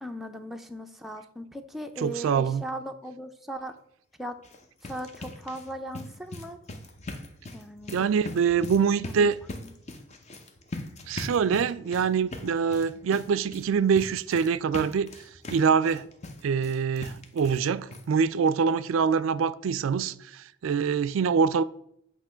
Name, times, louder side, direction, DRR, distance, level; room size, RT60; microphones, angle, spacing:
voice 1, 0.0-3.7 4.2-4.4 4.8-6.6 7.5-8.1 9.0-9.3, right 1 dB, ahead, 0.4 m, -38 dB
voice 2, 2.0-2.6 7.9-9.4 11.1-16.1 16.4-21.6, right 6 dB, 90° right, 0.3 m, -25 dB
sound 1, 4.3-17.7 17.9-18.0 18.5-18.6 18.9-19.0, left 2 dB, 35° left, 0.7 m, -41 dB
8.3 x 3.0 x 5.6 m
head